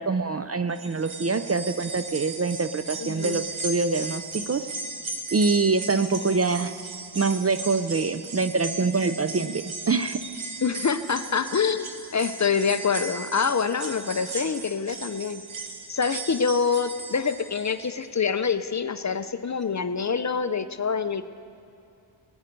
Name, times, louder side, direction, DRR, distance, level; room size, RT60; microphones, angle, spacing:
voice 1, 0.0-4.6 5.3-6.7 7.1-10.2, right 4 dB, 35° right, 10 dB, 0.4 m, -25 dB
sound 1, 0.7-18.0 18.4-18.5 19.6-19.7, right 3 dB, 85° right, 1.3 m, -37 dB
voice 2, 3.0-3.4 10.6-15.4 15.9-21.2, left 6 dB, 40° left, 11 dB, 0.5 m, -26 dB
19.5 x 9.7 x 5.2 m, 2.7 s
wide cardioid pair, 105°, 47 cm